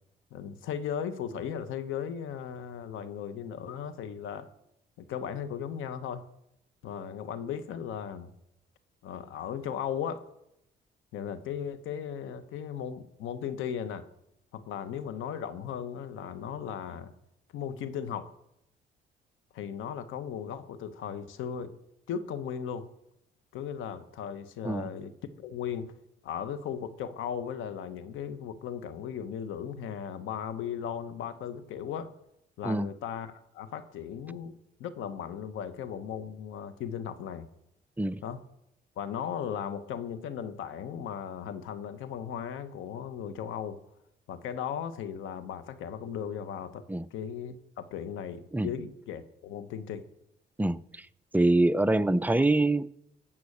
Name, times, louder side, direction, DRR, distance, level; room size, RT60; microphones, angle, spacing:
voice 1, 0.3-4.5 5.0-6.3 6.8-8.3 9.0-10.2 11.1-14.1 14.5-17.1 17.5-18.3 19.5-21.7 22.1-22.9 23.5-25.1 25.4-25.9 26.2-32.1 32.6-37.5 38.2-38.4 39.0-43.8 44.3-46.8 47.1-50.0 52.4-52.5, left 8 dB, 90° left, 1.1 m, -37 dB
voice 2, 50.6-51.1 51.3-52.9, right 2 dB, 10° right, 0.5 m, -25 dB
15.5 x 6.1 x 8.5 m
cardioid pair, 90°, 20 cm